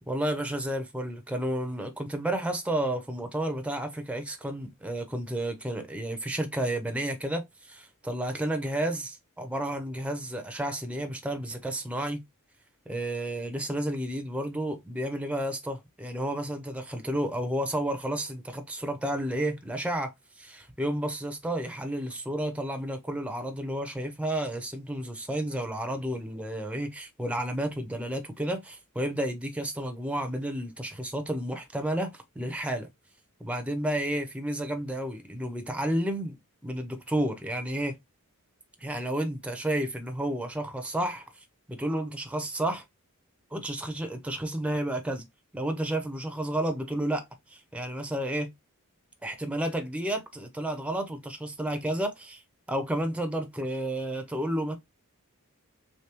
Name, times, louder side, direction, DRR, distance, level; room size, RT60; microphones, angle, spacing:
voice 1, 0.1-12.2 12.9-20.1 20.4-32.9 33.4-36.4 36.6-38.0 38.8-41.2 41.7-42.8 43.5-45.2 45.5-48.5 49.2-52.4 52.7-54.8, right 1 dB, 5° right, 0.5 m, -31 dB
3.3 x 3.1 x 2.9 m
head